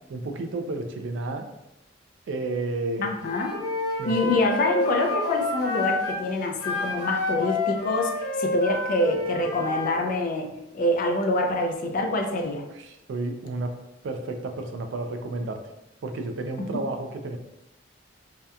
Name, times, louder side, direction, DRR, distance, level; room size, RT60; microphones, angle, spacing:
voice 1, 0.1-1.5 2.3-3.1 4.0-4.3 12.7-13.7 14.0-15.6 16.0-17.4, right 2 dB, 75° right, 6 dB, 0.3 m, -31 dB
voice 2, 3.0-3.6 4.0-12.6 16.6-16.7, left 2 dB, 45° left, 3 dB, 0.3 m, -26 dB
Wind instrument woodwind instrument, 3.2-6.2 6.6-10.0, left 2 dB, 90° left, 1.0 m, -29 dB
2.8 x 2.2 x 2.3 m, 0.90 s
head